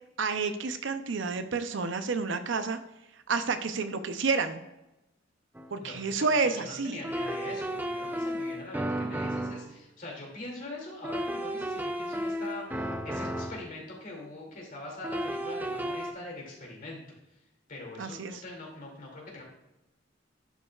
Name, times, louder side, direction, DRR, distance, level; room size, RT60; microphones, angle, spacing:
voice 1, 0.2-2.8 3.3-4.6 5.7-7.0 18.0-18.4, right 4 dB, 75° right, 9 dB, 0.6 m, -29 dB
sound 1, 5.6-5.7 7.0-9.7 11.0-13.7 15.0-16.1, equal, 10° right, 0.5 m, -33 dB
voice 2, 5.8-17.0 17.7-19.4, left 2 dB, 45° left, -1 dB, 2.5 m, -43 dB
11.0 x 5.4 x 2.4 m, 0.94 s
head